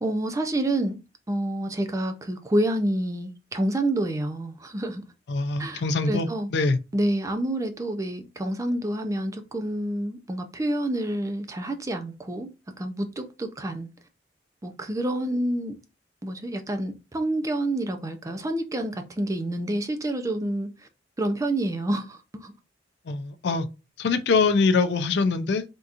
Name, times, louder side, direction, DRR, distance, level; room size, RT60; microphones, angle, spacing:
voice 1, 0.0-1.0 1.3-5.0 5.6-6.5 6.9-12.5 12.8-13.9 14.6-15.8 16.2-20.7 21.2-22.5, right 1 dB, 20° right, 0.4 m, -28 dB
voice 2, 5.3-6.8 23.1-23.7 24.0-25.6, left 4 dB, 65° left, 0.4 m, -23 dB
3.5 x 2.8 x 2.4 m
head